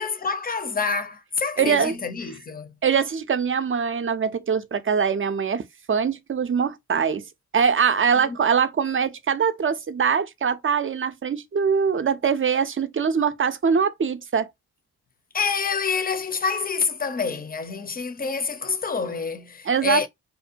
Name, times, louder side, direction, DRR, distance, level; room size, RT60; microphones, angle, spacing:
voice 1, 0.0-2.7 8.2-8.4 15.3-20.1, left 5 dB, 25° left, 0.6 m, -27 dB
voice 2, 1.6-1.9 2.8-5.6 5.9-7.3 7.5-14.5 19.7-20.1, right 6 dB, 30° right, 0.5 m, -23 dB
2.6 x 2.1 x 2.5 m
supercardioid pair, 45°, 40 cm